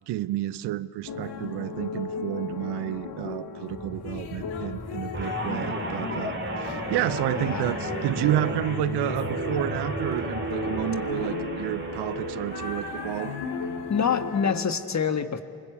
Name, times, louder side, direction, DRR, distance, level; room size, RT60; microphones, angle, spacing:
voice 1, 0.1-13.3, right 14 dB, 65° right, 18 dB, 0.7 m, -30 dB
sound 1, 1.1-14.6, left 5 dB, 65° left, 2.1 m, -35 dB
sound 2, 3.7-11.0, left 2 dB, 5° left, 1.1 m, -39 dB
Guitar, 5.1-13.7 14.1-14.4, right 3 dB, 25° right, 3.3 m, -34 dB
voice 2, 7.3-7.7 13.9-15.4, left 6 dB, 40° left, 9 dB, 1.7 m, -26 dB
27.5 x 20.0 x 8.2 m, 2.3 s
hypercardioid pair, 45°, 43 cm